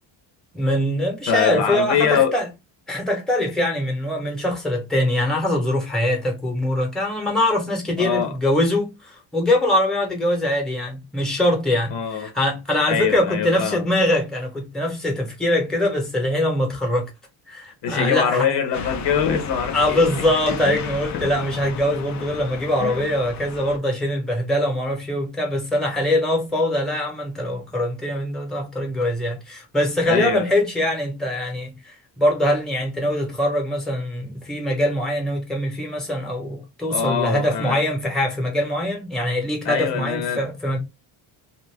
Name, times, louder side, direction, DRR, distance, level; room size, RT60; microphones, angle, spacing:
voice 1, 0.5-2.5 2.9-17.1 17.5-18.5 19.7-40.8, left 1 dB, ahead, 0.9 m, -23 dB
voice 2, 1.3-2.4 8.0-8.3 11.9-12.3 12.9-13.8 17.8-20.0 20.5-20.8 22.8-23.1 30.1-30.5 36.9-37.8 39.6-40.4, left 7 dB, 65° left, 1.0 m, -23 dB
sound 1, 18.7-23.8, left 6 dB, 40° left, 0.5 m, -34 dB
2.6 x 2.6 x 3.2 m
cardioid pair, 145°, 46 cm